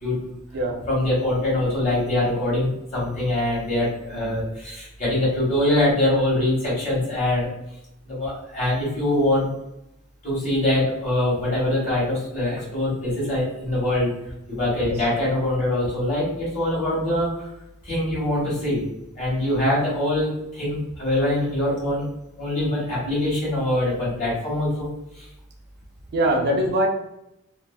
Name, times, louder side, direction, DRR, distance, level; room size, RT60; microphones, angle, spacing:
voice 1, 0.0-0.4 0.9-7.5 8.0-9.5 10.2-14.1 14.5-17.5 17.8-18.8 19.1-22.0 22.4-24.9 25.1-25.3, left 1 dB, 35° left, -6 dB, 1.2 m, -23 dB
voice 2, 26.1-26.9, right 1 dB, 50° right, 1 dB, 0.4 m, -22 dB
2.5 x 2.3 x 2.3 m, 0.87 s
head